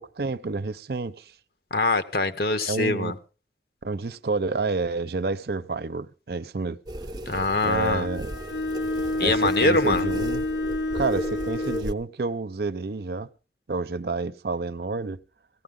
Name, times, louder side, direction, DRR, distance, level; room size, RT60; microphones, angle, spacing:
voice 1, 0.0-1.3 2.7-3.2 3.8-6.8 7.6-8.3 9.2-10.5 10.9-13.3 13.7-15.2, right 3 dB, 65° right, 0.6 m, -29 dB
voice 2, 1.7-3.1 7.3-8.1 9.2-10.1, left 3 dB, 60° left, 1.0 m, -23 dB
sound 1, 6.9-11.9, right 1 dB, 25° right, 0.7 m, -36 dB
Bowed string instrument, 8.0-12.0, left 2 dB, 85° left, 1.0 m, -28 dB
17.5 x 15.0 x 3.8 m
head